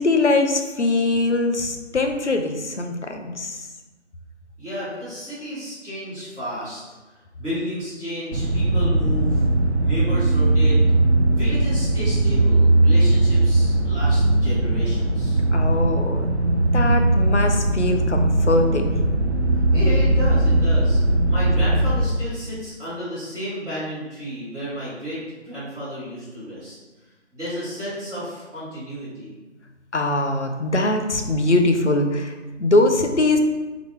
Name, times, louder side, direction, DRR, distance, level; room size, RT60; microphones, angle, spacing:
voice 1, 0.0-3.7 15.5-16.3 16.7-19.1 29.9-33.4, left 2 dB, 65° left, 5 dB, 0.7 m, -22 dB
voice 2, 4.6-6.9 7.4-9.4 9.8-10.8 11.2-15.4 19.5-21.0 21.3-25.2 25.4-26.7 27.3-29.3, equal, ahead, -30 dB, 1.3 m, -32 dB
sound 1, 8.3-22.1, right 2 dB, 65° right, 0.6 m, -19 dB
3.9 x 3.2 x 3.1 m, 1.2 s
figure-of-eight pair, 165°, 37 cm